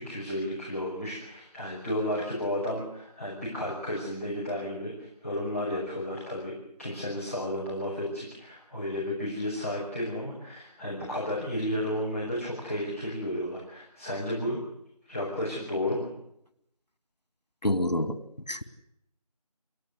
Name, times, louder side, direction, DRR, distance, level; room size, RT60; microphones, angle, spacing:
voice 1, 0.0-6.5 6.8-14.6 15.0-16.1, left 1 dB, 20° left, -7 dB, 5.7 m, -32 dB
voice 2, 17.6-18.2 18.4-18.6, left 1 dB, 85° left, 10 dB, 2.8 m, -27 dB
29.5 x 14.5 x 8.1 m, 0.76 s
figure-of-eight pair, 175°, 21 cm